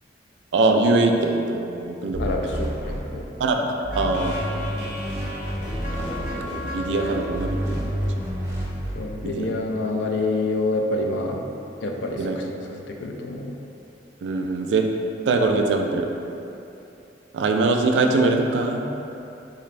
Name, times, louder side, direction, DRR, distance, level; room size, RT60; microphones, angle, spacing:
voice 1, 0.5-2.3 3.4-4.4 6.0-7.9 8.2-8.3 9.2-9.5 12.2-12.4 14.2-14.9 15.3-16.1 17.3-19.0, right 3 dB, 90° right, 3 dB, 0.3 m, -23 dB
sound 1, 2.1-3.5 3.8-6.7 7.3-9.0, equal, 15° right, 0.5 m, -30 dB
voice 2, 2.2-3.3 9.0-11.4 11.8-12.6 12.9-13.5, left 2 dB, 85° left, 2 dB, 0.4 m, -27 dB
sound 2, 3.9-8.9, equal, 45° left, 0.7 m, -34 dB
3.8 x 2.5 x 3.1 m, 2.8 s
head